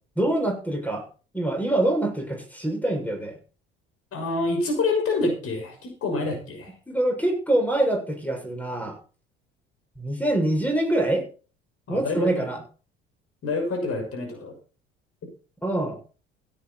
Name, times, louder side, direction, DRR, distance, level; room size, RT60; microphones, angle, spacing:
voice 1, 0.2-1.1 1.3-3.4 6.9-9.0 10.0-11.3 11.9-12.6 15.6-16.0, right 1 dB, 5° left, 5 dB, 6.9 m, -25 dB
voice 2, 4.1-6.7 11.9-12.5 13.4-14.5, left 3 dB, 50° left, 4 dB, 6.2 m, -27 dB
16.5 x 9.4 x 4.4 m, 0.36 s
figure-of-eight pair, 60°, 30 cm